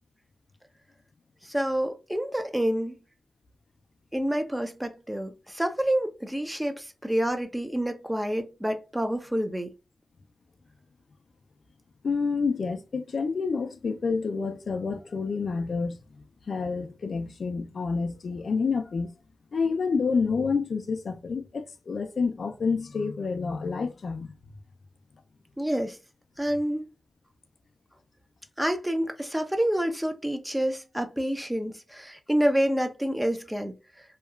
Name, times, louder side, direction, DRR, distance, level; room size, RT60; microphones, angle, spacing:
voice 1, 1.4-3.0 4.1-9.7 25.6-26.0 26.4-26.9 28.6-33.8, equal, 10° right, 0.5 m, -28 dB
voice 2, 12.0-16.0 16.5-19.1 19.5-24.3, left 4 dB, 65° left, 0.4 m, -28 dB
2.8 x 2.3 x 2.3 m
cardioid pair, 65°, 0 cm